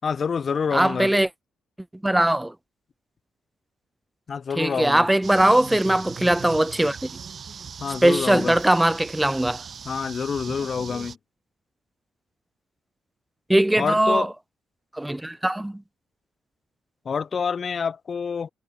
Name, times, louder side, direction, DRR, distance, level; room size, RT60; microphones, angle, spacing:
voice 1, 0.0-1.1 4.3-5.1 7.8-8.6 9.8-11.2 13.8-14.3 17.0-18.5, left 6 dB, 45° left, 4.2 m, -27 dB
voice 2, 0.7-1.3 2.0-2.5 4.6-7.1 8.0-9.6 13.5-14.3 14.9-15.8, right 1 dB, 10° right, 2.7 m, -20 dB
sound 1, 5.2-11.2, right 6 dB, 50° right, 2.6 m, -39 dB
cardioid pair, 90°, 0 cm